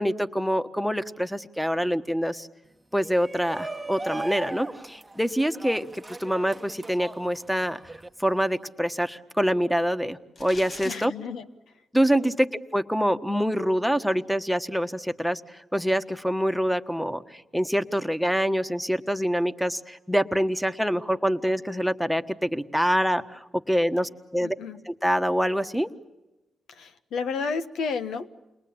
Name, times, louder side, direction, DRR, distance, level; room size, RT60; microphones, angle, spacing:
voice 1, 0.0-2.5 2.9-7.8 8.2-11.1 11.9-24.5 24.9-25.9, equal, ahead, 11 dB, 1.3 m, -25 dB
Shout, 3.0-8.1, right 2 dB, 20° right, 1.0 m, -38 dB
sound 1, 10.4-11.0, left 3 dB, 55° left, 2.1 m, -42 dB
voice 2, 10.8-11.5 12.2-12.3 24.4-24.8 26.7-28.3, left 5 dB, 85° left, 9 dB, 1.3 m, -32 dB
29.5 x 22.0 x 8.7 m, 1.0 s
cardioid pair, 70°, 0 cm